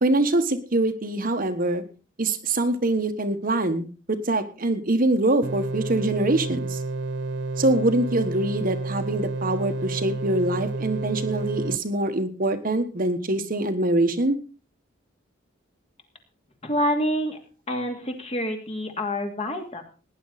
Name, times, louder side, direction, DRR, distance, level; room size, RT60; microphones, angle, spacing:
voice 1, 0.0-1.8 2.2-6.8 7.6-14.4, right 2 dB, 45° right, 8 dB, 1.3 m, -24 dB
sound 1, 5.4-11.8, right 3 dB, 65° right, 0.7 m, -30 dB
voice 2, 16.6-17.4 17.7-19.8, equal, 30° left, 4 dB, 2.6 m, -27 dB
18.0 x 10.5 x 4.1 m, 0.36 s
head